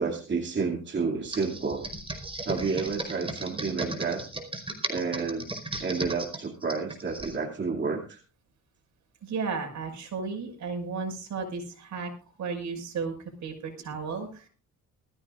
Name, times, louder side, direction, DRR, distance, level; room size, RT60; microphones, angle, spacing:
voice 1, 0.0-1.8 2.5-4.2 4.9-5.5 5.8-8.2, right 4 dB, 35° right, 0 dB, 2.7 m, -30 dB
Computer keyboard, 1.2-7.4, right 2 dB, 20° right, 4.8 m, -36 dB
voice 2, 9.2-12.1 12.4-14.5, right 5 dB, 65° right, 5 dB, 5.9 m, -34 dB
20.5 x 15.5 x 2.5 m, 0.36 s
cardioid pair, 90°, 30 cm